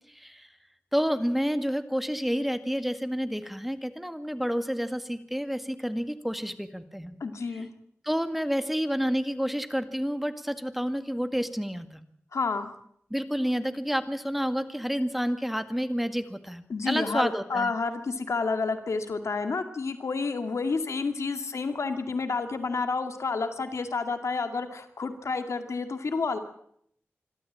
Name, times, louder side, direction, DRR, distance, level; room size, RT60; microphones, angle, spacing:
voice 1, 0.1-0.5 0.9-7.2 8.0-12.0 13.1-17.7, equal, 5° right, 10 dB, 1.9 m, -29 dB
voice 2, 7.2-7.7 12.3-12.7 16.7-26.4, left 4 dB, 85° left, 7 dB, 2.2 m, -30 dB
26.0 x 13.0 x 8.7 m, 0.67 s
wide cardioid pair, 60°, 5 cm